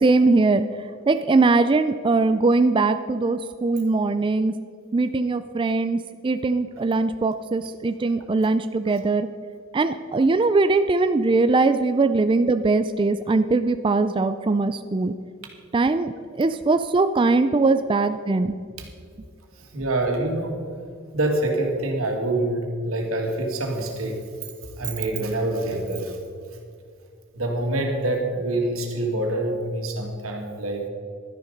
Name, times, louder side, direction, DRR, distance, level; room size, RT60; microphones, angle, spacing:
voice 1, 0.0-0.6 1.1-4.5 4.9-9.3 9.7-15.1 15.7-16.1 16.4-18.6, right 3 dB, 25° right, 10 dB, 0.3 m, -21 dB
voice 2, 19.7-20.7 21.1-24.2 24.8-26.2 27.3-30.9, right 2 dB, 85° right, 2 dB, 2.3 m, -26 dB
12.5 x 10.5 x 5.2 m, 2.3 s
head